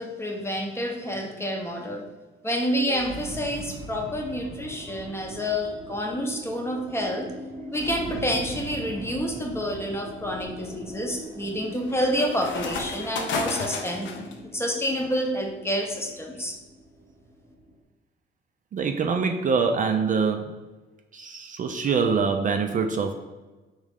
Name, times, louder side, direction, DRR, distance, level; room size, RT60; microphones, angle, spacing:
voice 1, 0.0-2.1 2.4-7.3 7.7-16.6, equal, 15° left, 2 dB, 0.7 m, -28 dB
sound 1, 2.9-17.8, right 1 dB, 20° right, 0.7 m, -41 dB
sound 2, 8.8-9.2 9.7-14.4, left 4 dB, 70° left, 0.6 m, -34 dB
voice 2, 18.7-20.6 21.1-23.1, right 5 dB, 40° right, 5 dB, 0.4 m, -24 dB
3.6 x 3.1 x 3.4 m, 1.2 s
cardioid pair, 90°, 20 cm